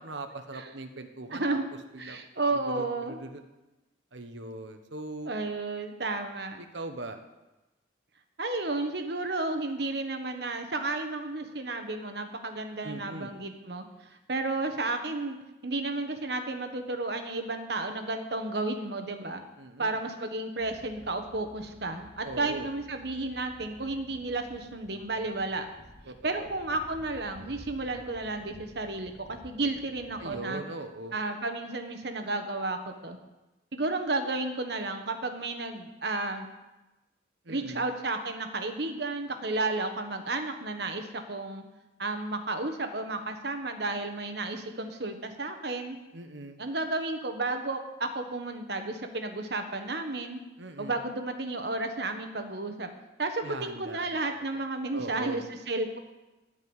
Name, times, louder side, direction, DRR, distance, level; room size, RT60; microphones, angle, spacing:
voice 1, 0.0-1.4 1.9-2.2 2.5-3.4 4.1-5.3 6.6-7.2 12.8-13.3 19.6-20.0 22.2-22.7 26.1-26.5 30.2-31.2 37.4-37.8 46.1-46.6 50.6-51.0 53.4-54.2 54.5-54.6 54.9-55.4, right 2 dB, 80° right, 7 dB, 1.2 m, -40 dB
voice 2, 1.3-1.6 2.0-3.2 5.3-6.6 8.4-15.4 15.6-19.4 19.8-25.7 26.2-30.6 31.1-33.2 33.7-36.5 37.5-41.6 42.0-46.0 46.6-50.4 50.8-52.9 53.2-56.0, right 2 dB, 60° right, 6 dB, 1.4 m, -32 dB
sound 1, 20.6-30.4, left 1 dB, 50° left, 3.2 m, -53 dB
14.5 x 5.4 x 9.7 m, 1.0 s
head